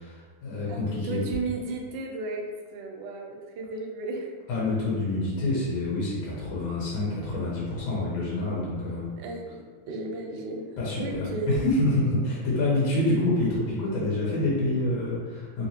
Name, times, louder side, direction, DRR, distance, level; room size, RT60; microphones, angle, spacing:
voice 1, 0.0-1.2 4.5-9.1 10.8-15.7, left 2 dB, 75° left, -6 dB, 1.5 m, -27 dB
voice 2, 0.7-2.4 2.7-4.3 9.2-11.6, right 3 dB, 75° right, 1 dB, 1.2 m, -34 dB
3.2 x 2.7 x 2.8 m, 1.5 s
omnidirectional pair, 2.3 m